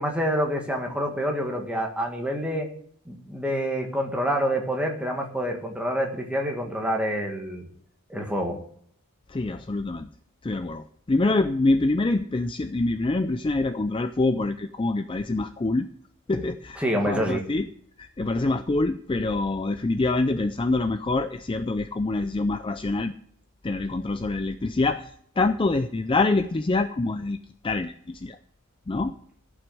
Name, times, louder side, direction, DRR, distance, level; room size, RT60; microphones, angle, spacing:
voice 1, 0.0-2.7 3.1-7.7 8.1-8.6 16.8-17.4, equal, 5° right, 1 dB, 1.7 m, -27 dB
voice 2, 9.3-10.1 10.4-15.9 16.3-17.7 18.0-23.1 23.6-25.1 25.4-27.4 27.6-28.4 28.9-29.1, left 2 dB, 25° left, 10 dB, 0.4 m, -25 dB
14.5 x 6.0 x 7.7 m, 0.64 s
head